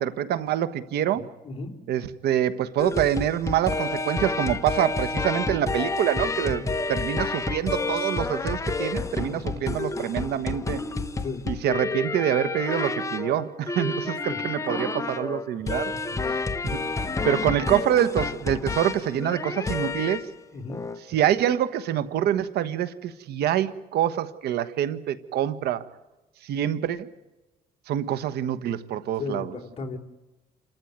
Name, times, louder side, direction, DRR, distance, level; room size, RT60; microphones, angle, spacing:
voice 1, 0.0-1.3 1.9-6.6 6.9-10.8 11.5-15.9 16.6-20.3 21.1-25.8 26.4-27.1 27.9-29.6, right 11 dB, 75° right, 13 dB, 1.4 m, -26 dB
sound 1, 2.8-20.3 20.7-21.0, left 3 dB, 20° left, 1.1 m, -29 dB
voice 2, 29.2-30.0, left 4 dB, 35° left, 3 dB, 3.6 m, -34 dB
29.0 x 13.5 x 9.5 m, 1.1 s
cardioid pair, 110°, 17 cm